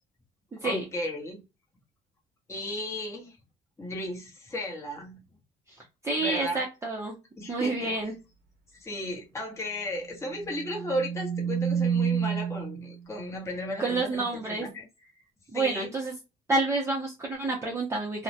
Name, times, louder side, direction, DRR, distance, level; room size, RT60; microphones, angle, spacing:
voice 1, 0.6-1.4 2.5-3.4 3.8-5.2 6.2-6.6 7.4-8.0 8.7-14.9 15.5-15.9, left 1 dB, 15° left, 0.9 m, -35 dB
voice 2, 6.0-7.2 7.5-8.1 13.8-14.6 15.5-16.1 16.5-18.2, right 3 dB, 15° right, 0.6 m, -28 dB
sound 1, 10.4-13.0, right 7 dB, 80° right, 0.8 m, -29 dB
2.2 x 2.1 x 2.6 m
cardioid pair, 110°, 17 cm